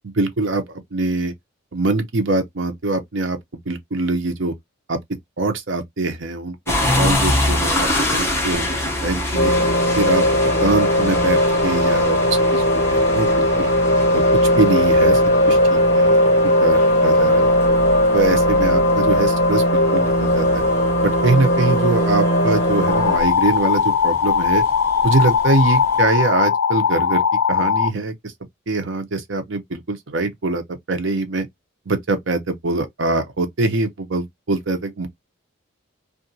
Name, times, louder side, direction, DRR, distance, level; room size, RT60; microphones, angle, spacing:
voice 1, 0.0-1.3 1.7-3.4 3.7-4.5 4.9-5.0 5.4-8.6 9.0-9.5 10.0-10.2 10.6-12.2 12.5-12.6 12.9-13.7 14.1-15.2 15.5-16.1 16.4-17.5 18.1-20.6 21.0-24.6 25.0-28.3 28.7-30.6 30.9-31.5 31.9-35.1, right 2 dB, 60° right, 0.7 m, -23 dB
sound 1, 6.7-26.0, left 1 dB, 10° left, 0.7 m, -27 dB
sound 2, 9.3-23.2, left 1 dB, 25° left, 1.7 m, -17 dB
sound 3, 22.9-27.9, left 7 dB, 80° left, 0.4 m, -19 dB
2.8 x 2.4 x 2.7 m
head